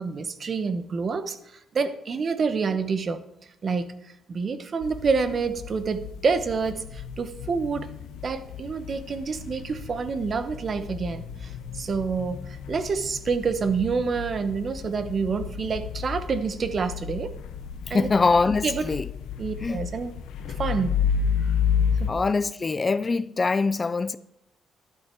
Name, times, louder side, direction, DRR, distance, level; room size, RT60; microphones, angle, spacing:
voice 1, 0.0-1.4 1.7-3.2 3.6-3.9 4.3-7.9 8.2-17.3 17.9-18.1 18.6-18.9 19.4-20.1 20.6-21.0 22.0-22.1, right 5 dB, 45° right, 1.1 m, -27 dB
sound 1, 4.8-22.1, left 7 dB, 85° left, 0.9 m, -32 dB
voice 2, 17.9-19.1 19.6-19.8 22.1-24.2, left 4 dB, 30° left, 0.5 m, -23 dB
11.5 x 10.5 x 4.5 m
cardioid pair, 90°, 0 cm